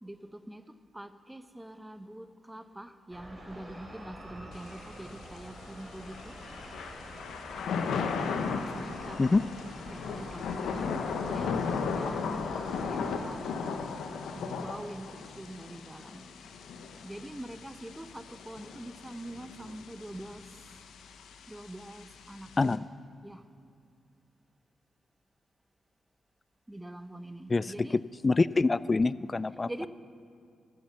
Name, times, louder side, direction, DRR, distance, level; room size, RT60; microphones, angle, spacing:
voice 1, 0.0-6.4 8.3-9.2 9.7-13.9 14.3-16.3 17.0-20.6 21.5-22.5 23.2-23.4 26.7-28.0 29.7-29.9, right 1 dB, 10° right, 12 dB, 0.8 m, -44 dB
sound 1, 3.1-13.2, equal, 35° right, 3.4 m, -47 dB
Thunder / Rain, 4.5-22.8, left 5 dB, 75° left, 0.8 m, -36 dB
voice 2, 28.2-29.7, left 3 dB, 35° left, 19 dB, 0.3 m, -25 dB
13.5 x 8.8 x 7.0 m, 2.5 s
hypercardioid pair, 45°, 0 cm